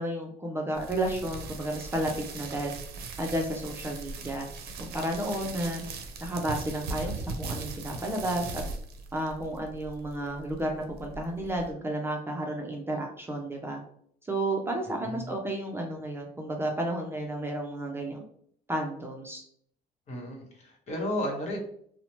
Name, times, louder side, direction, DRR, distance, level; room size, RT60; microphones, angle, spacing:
voice 1, 0.0-2.7 3.2-4.5 4.8-5.8 6.2-8.6 9.1-13.8 14.2-18.2 18.7-19.4, right 1 dB, 15° right, 0 dB, 0.4 m, -32 dB
sound 1, 0.7-11.7, right 3 dB, 70° right, 0.5 m, -39 dB
voice 2, 14.9-15.3 20.1-21.6, left 1 dB, 40° left, 0 dB, 0.9 m, -34 dB
2.8 x 2.0 x 2.9 m, 0.64 s
cardioid pair, 110°, 17 cm